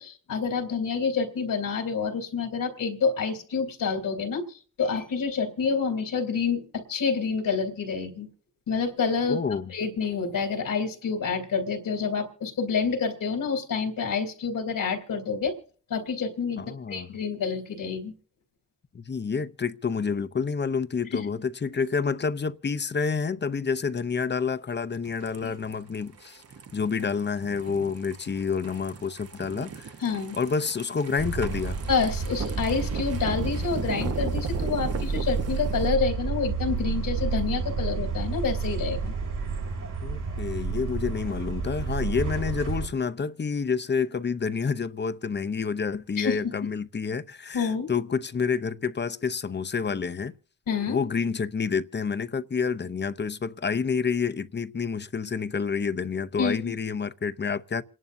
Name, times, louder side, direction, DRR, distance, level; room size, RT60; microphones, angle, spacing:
voice 1, 0.0-4.4 4.8-8.3 8.7-9.4 9.7-15.6 15.9-18.1 21.1-21.2 25.4-25.5 30.0-30.4 31.9-39.1 46.2-46.6 47.5-47.9 50.7-51.0 56.4-56.7, left 5 dB, 85° left, 3.1 m, -28 dB
voice 2, 9.3-9.7 16.6-17.1 18.9-26.4 26.7-29.9 30.4-31.8 40.0-50.3 50.9-57.8, left 5 dB, 35° left, 0.7 m, -28 dB
sound 1, 25.0-35.9, right 6 dB, 50° right, 1.1 m, -39 dB
sound 2, 31.2-42.9, right 4 dB, 75° right, 5.2 m, -30 dB
28.0 x 11.0 x 2.7 m
cardioid pair, 75°, 32 cm